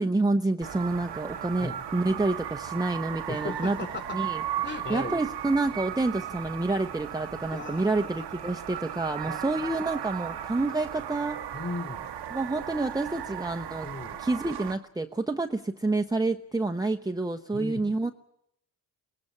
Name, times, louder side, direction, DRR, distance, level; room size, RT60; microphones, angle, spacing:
voice 1, 0.0-3.8 4.1-4.4 4.9-11.4 12.3-13.9 14.2-18.1, right 2 dB, 10° right, 3 dB, 1.0 m, -28 dB
sound 1, 0.6-14.7, right 10 dB, 90° right, 1.5 m, -36 dB
voice 2, 3.3-5.2 7.5-8.1 9.3-9.7 11.5-12.1 13.8-14.2 17.5-17.9, left 3 dB, 30° left, 9 dB, 4.2 m, -37 dB
23.0 x 18.5 x 8.7 m, 0.76 s
cardioid pair, 65°, 39 cm